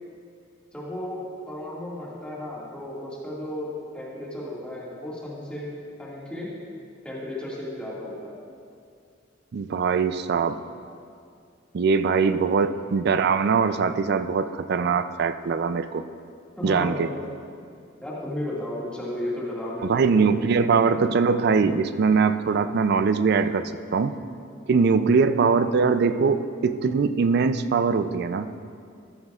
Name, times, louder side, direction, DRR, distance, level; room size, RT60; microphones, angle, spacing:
voice 1, 0.7-5.7 6.0-6.5 7.0-8.4 12.2-12.5 16.6-17.1 18.0-20.9 24.7-24.9, left 1 dB, 5° left, -7 dB, 1.9 m, -34 dB
voice 2, 9.5-10.6 11.7-16.0 16.6-17.1 19.8-24.1 24.7-28.5, right 5 dB, 55° right, 11 dB, 0.4 m, -22 dB
14.0 x 9.6 x 2.4 m, 2.3 s
head